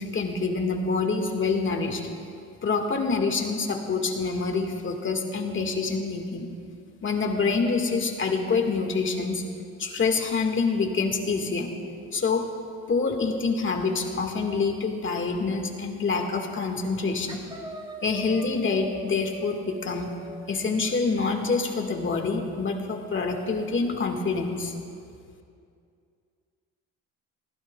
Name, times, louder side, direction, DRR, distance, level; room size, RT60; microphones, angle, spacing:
voice 1, 0.0-2.0 2.6-6.5 7.0-9.4 9.8-11.7 12.1-12.5 12.9-17.4 18.0-20.2 20.5-24.7, left 4 dB, 35° left, 3 dB, 1.9 m, -26 dB
sound 1, 16.1-16.4 16.7-17.0 17.3-21.3, right 2 dB, 15° right, 2.1 m, -42 dB
24.5 x 15.5 x 2.4 m, 2.3 s
supercardioid pair, 85°, 33 cm